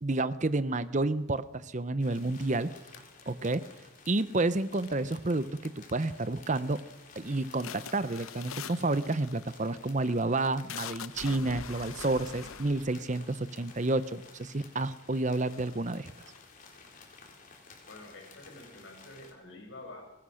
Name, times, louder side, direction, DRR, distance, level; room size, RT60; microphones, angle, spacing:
voice 1, 0.0-2.7 3.3-3.6 4.1-6.8 7.2-16.1, right 2 dB, 35° right, 14 dB, 0.7 m, -30 dB
sound 1, 2.0-19.3, left 4 dB, 40° left, 3.8 m, -54 dB
sound 2, 2.9-4.0 4.7-5.3 5.6-6.1 6.5-6.8 7.2-14.2 14.9-15.0 15.3-16.9, left 7 dB, 80° left, 0.9 m, -45 dB
voice 2, 17.9-20.0, left 2 dB, 60° left, 3 dB, 5.7 m, -48 dB
22.5 x 20.0 x 6.5 m, 1.0 s
head